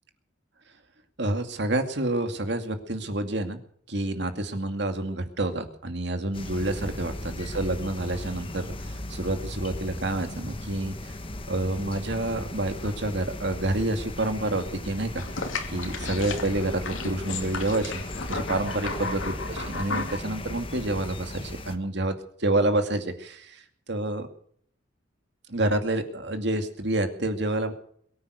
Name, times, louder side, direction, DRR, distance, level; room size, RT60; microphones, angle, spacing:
voice 1, 1.2-3.6 3.9-11.1 11.5-15.2 15.7-18.0 18.3-19.2 19.5-23.6 23.9-24.3 25.5-27.7, right 2 dB, 60° right, 7 dB, 2.4 m, -28 dB
sound 1, 6.3-21.8, left 1 dB, 30° left, 1.3 m, -37 dB
sound 2, 15.2-20.2, left 3 dB, 90° left, 2.6 m, -34 dB
22.5 x 9.5 x 6.5 m, 0.62 s
head